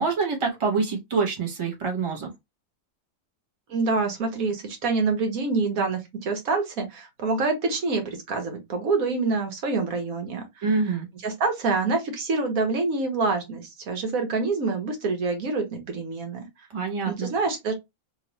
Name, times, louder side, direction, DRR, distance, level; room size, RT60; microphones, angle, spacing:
voice 1, 0.0-2.3 10.6-11.1 16.7-17.3, right 4 dB, 25° right, 0.9 m, -26 dB
voice 2, 3.7-10.6 11.2-16.5 17.1-17.7, right 3 dB, 85° right, 1.4 m, -26 dB
3.0 x 2.6 x 2.9 m
omnidirectional pair, 1.4 m